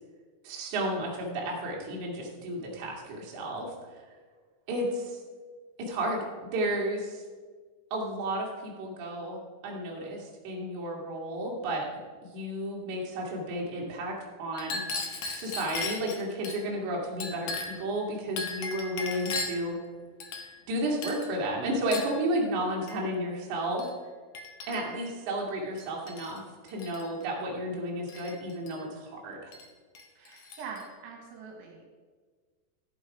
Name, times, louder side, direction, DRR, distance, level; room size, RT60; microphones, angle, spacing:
voice 1, 0.4-3.7 4.7-5.2 5.8-6.3 6.5-7.2 7.9-11.9 12.2-14.8 15.4-19.8 20.7-23.8 24.7-29.5, right 1 dB, 50° right, -2 dB, 2.9 m, -32 dB
Chink clink, 14.5-16.6 17.2-17.9 18.4-19.7 20.2-20.7 21.0-21.3 21.9-22.2 22.9-23.0 23.8-23.9 24.3-25.1 25.8-26.4 26.7-27.1 28.1-28.8 29.5-29.7 30.0-30.8, left 3 dB, 85° left, 1.7 m, -37 dB
voice 2, 30.2-31.8, right 5 dB, 70° right, 1 dB, 3.6 m, -43 dB
14.0 x 8.4 x 4.9 m, 1.5 s
omnidirectional pair, 5.7 m